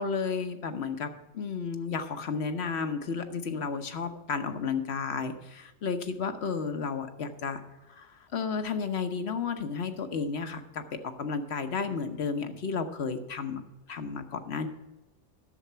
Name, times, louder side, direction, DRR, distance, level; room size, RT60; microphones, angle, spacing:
voice 1, 0.0-7.6 7.9-13.6 13.9-14.7, left 5 dB, 55° left, 8 dB, 1.2 m, -32 dB
11.5 x 7.2 x 5.6 m, 1.1 s
omnidirectional pair, 1.3 m